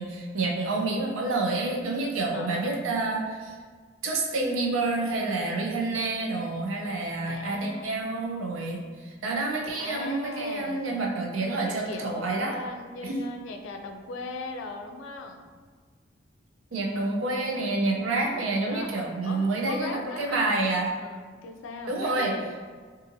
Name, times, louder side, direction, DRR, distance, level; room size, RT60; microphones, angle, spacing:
voice 1, 0.0-3.5 4.0-12.5 13.0-13.2 16.7-20.9 21.9-22.3, right 2 dB, 85° right, 0 dB, 0.5 m, -28 dB
voice 2, 2.3-2.9 7.3-8.0 9.8-10.8 11.7-15.5 18.7-20.6 20.9-22.5, left 3 dB, 75° left, 4 dB, 0.3 m, -39 dB
2.6 x 2.6 x 2.6 m, 1.5 s
head